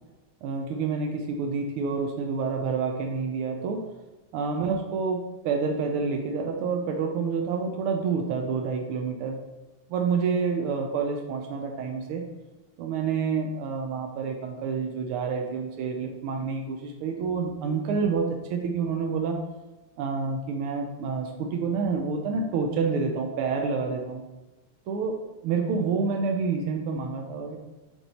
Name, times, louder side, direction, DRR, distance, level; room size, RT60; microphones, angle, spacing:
voice 1, 0.4-3.8 4.3-9.4 9.9-12.2 12.8-19.4 20.0-24.2 24.9-25.2 25.4-27.6, right 5 dB, 90° right, 3 dB, 1.6 m, -28 dB
8.2 x 4.5 x 4.3 m, 1.1 s
omnidirectional pair, 2.4 m